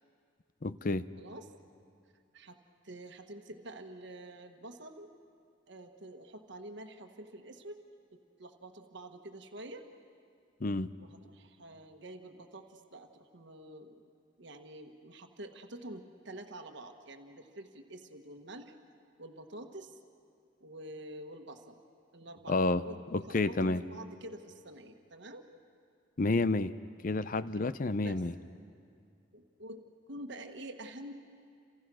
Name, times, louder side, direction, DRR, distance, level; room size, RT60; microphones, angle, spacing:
voice 1, 0.6-1.0 10.6-10.9 22.5-22.8 23.1-23.8 26.2-26.7 27.0-28.3, left 2 dB, 45° left, 14 dB, 0.6 m, -29 dB
voice 2, 1.2-1.5 2.3-2.6 2.8-5.1 5.7-7.8 8.4-9.8 11.0-14.1 14.4-18.7 19.2-20.0 20.6-21.8 22.1-25.4 28.0-28.2 29.3-31.1, right 1 dB, 60° right, 4 dB, 1.4 m, -47 dB
29.0 x 27.0 x 6.3 m, 2.3 s
head